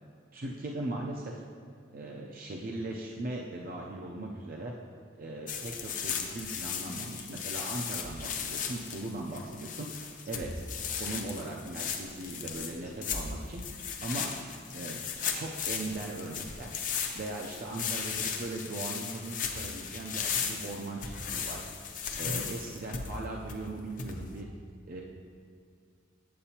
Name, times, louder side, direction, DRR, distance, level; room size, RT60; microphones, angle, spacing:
voice 1, 0.3-1.4 1.9-4.7 5.2-9.9 10.3-10.7 11.0-13.6 14.0-14.3 14.7-15.0 15.3-16.7 17.1-21.7 22.2-24.5 24.9-25.0, right 2 dB, 45° right, -1 dB, 0.5 m, -39 dB
sound 1, 5.5-24.4, left 6 dB, 45° left, 0.6 m, -36 dB
8.5 x 7.8 x 2.8 m, 2.2 s
head